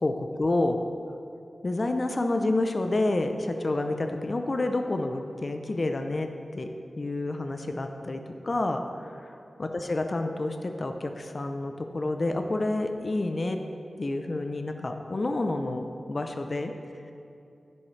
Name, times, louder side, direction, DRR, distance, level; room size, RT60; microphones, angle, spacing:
voice 1, 0.0-0.8 1.6-6.7 7.0-9.1 9.6-13.6 14.0-16.7, left 2 dB, 45° left, 5 dB, 0.6 m, -29 dB
15.5 x 7.1 x 3.3 m, 2.6 s
wide cardioid pair, 85°, 0 cm